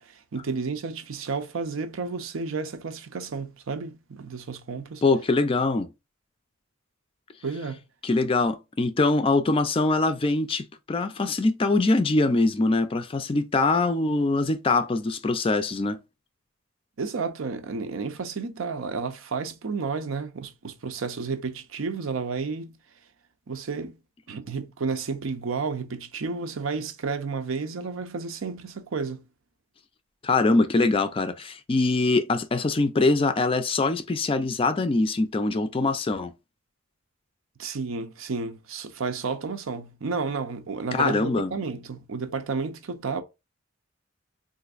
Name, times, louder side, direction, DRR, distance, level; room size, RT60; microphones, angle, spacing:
voice 1, 0.0-5.0 7.4-7.8 17.0-22.7 23.5-24.0 24.3-29.2 37.6-43.2, right 4 dB, 80° right, 0.6 m, -31 dB
voice 2, 5.0-5.9 8.0-16.0 30.2-36.3 40.9-41.5, left 3 dB, 25° left, 0.3 m, -23 dB
4.0 x 2.5 x 2.4 m
head